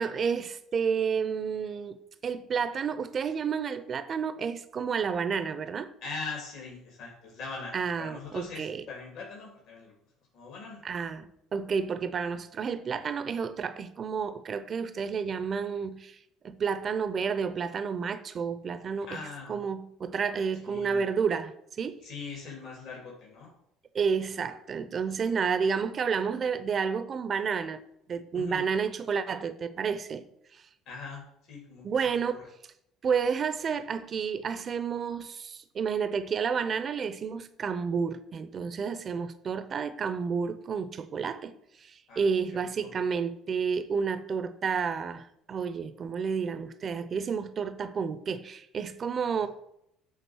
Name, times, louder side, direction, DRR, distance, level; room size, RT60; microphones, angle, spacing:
voice 1, 0.0-2.0 2.2-5.9 7.7-8.8 10.8-16.2 16.4-22.1 23.9-27.8 28.1-30.2 31.8-32.4 33.0-41.5 41.8-49.5, right 6 dB, 45° right, 0.7 m, -30 dB
voice 2, 6.0-9.9 10.3-10.8 19.1-19.6 20.6-21.1 22.0-23.5 28.3-28.6 30.9-31.8 32.3-32.4 42.1-42.2 42.8-42.9, left 4 dB, 65° left, 3.1 m, -41 dB
8.2 x 3.6 x 6.3 m
hypercardioid pair, 70°, 0 cm